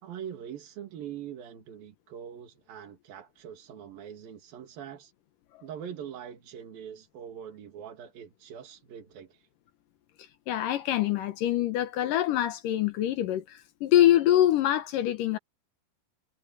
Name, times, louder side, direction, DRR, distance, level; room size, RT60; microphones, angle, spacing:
voice 1, 0.0-5.1 5.6-9.5, right 9 dB, 85° right, 3.9 m, -43 dB
voice 2, 10.5-15.4, left 12 dB, 75° left, 2.6 m, -25 dB
omnidirectional pair, 4.0 m